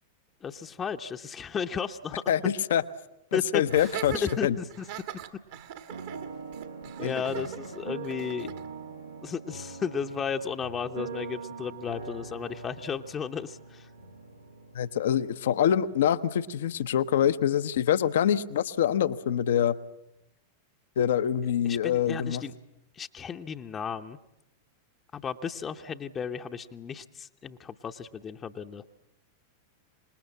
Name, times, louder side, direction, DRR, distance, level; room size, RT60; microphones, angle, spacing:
voice 1, 0.4-2.2 3.3-4.9 7.0-8.5 9.2-13.9 21.6-22.5 22.9-24.2 25.1-28.8, left 6 dB, 25° left, 5 dB, 0.9 m, -34 dB
voice 2, 2.3-2.8 3.3-4.1 4.4-4.6 7.0-7.1 14.7-19.8 21.0-22.4, left 9 dB, 60° left, 14 dB, 0.8 m, -25 dB
Laughter, 3.7-8.7, right 11 dB, 50° right, 1.7 m, -41 dB
sound 1, 5.9-18.9 19.2-19.3, right 4 dB, 80° right, 1.9 m, -43 dB
26.0 x 20.5 x 7.4 m, 0.88 s
figure-of-eight pair, 90°, 0 cm